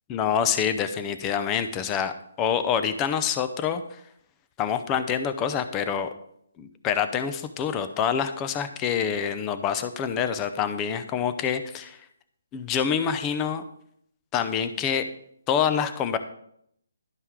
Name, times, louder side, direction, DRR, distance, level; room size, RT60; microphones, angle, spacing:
voice 1, 0.1-4.0 4.6-6.1 6.6-12.1 12.5-13.6 14.3-15.0 15.5-16.2, left 8 dB, 20° left, 10 dB, 0.7 m, -26 dB
11.5 x 5.5 x 4.8 m, 0.70 s
hypercardioid pair, 155°, 0 cm